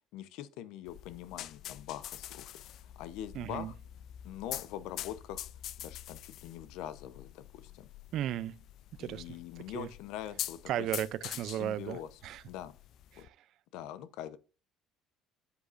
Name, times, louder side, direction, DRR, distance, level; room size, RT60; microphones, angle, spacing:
voice 1, 0.1-2.5 3.0-3.7 4.2-5.5 5.8-7.9 9.0-10.9 11.4-12.1 12.5-12.7 13.2-13.3 13.7-14.4, left 11 dB, 80° left, 0.8 m, -43 dB
sound 1, 0.9-13.3, left 12 dB, 60° left, 0.4 m, -45 dB
voice 2, 3.3-3.7 8.1-8.6 9.0-9.4 9.7-9.9 10.7-12.4 13.1-13.4, right 12 dB, 60° right, 0.4 m, -35 dB
8.1 x 8.1 x 2.5 m
cardioid pair, 120°, 0 cm